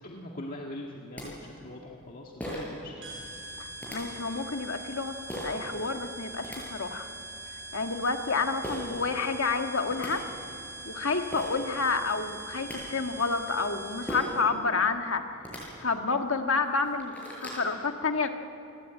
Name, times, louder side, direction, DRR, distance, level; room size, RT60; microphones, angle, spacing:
voice 1, 0.0-3.1, left 1 dB, 40° left, -1 dB, 1.8 m, -42 dB
sound 1, 0.8-0.9 1.2-1.3 2.4-2.8 3.8-4.0 5.3-5.5 6.2-6.6 8.6-8.8 9.6-9.7 9.9-10.1 11.0-11.1 11.3-11.5 12.4-12.8 14.1-14.4 15.3-15.6 16.2-16.3 16.7-17.6, equal, 5° left, 7.8 m, -37 dB
sound 2, 3.0-14.4, right 1 dB, 60° right, 6.3 m, -42 dB
voice 2, 3.6-5.2 5.4-7.1 7.7-10.2 10.8-17.1 17.4-18.3, left 4 dB, 65° left, 5 dB, 1.6 m, -29 dB
28.5 x 20.0 x 9.2 m, 2.7 s
head